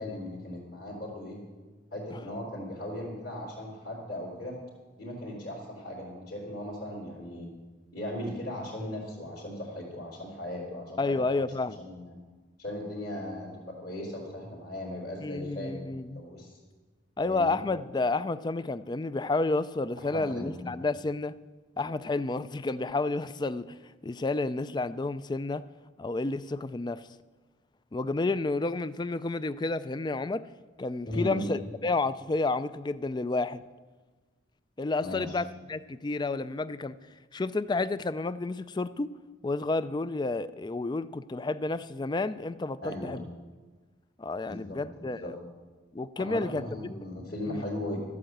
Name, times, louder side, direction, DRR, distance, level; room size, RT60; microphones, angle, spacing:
voice 1, 0.0-1.4 1.9-4.6 5.0-7.5 7.9-11.2 11.8-12.1 12.6-16.6 17.2-17.6 20.0-20.7 31.0-31.5 35.0-35.3 42.8-43.2 44.4-45.3 46.2-48.0, left 1 dB, 55° left, -7 dB, 3.3 m, -37 dB
voice 2, 11.0-11.8 15.2-16.2 17.2-21.3 21.8-25.6 26.0-27.1 27.9-30.4 30.8-33.6 34.8-37.0 37.3-39.1 39.4-43.2 44.2-45.2 45.9-47.0 47.5-47.6, left 3 dB, 25° left, 15 dB, 0.4 m, -30 dB
13.0 x 8.6 x 7.9 m, 1.3 s
head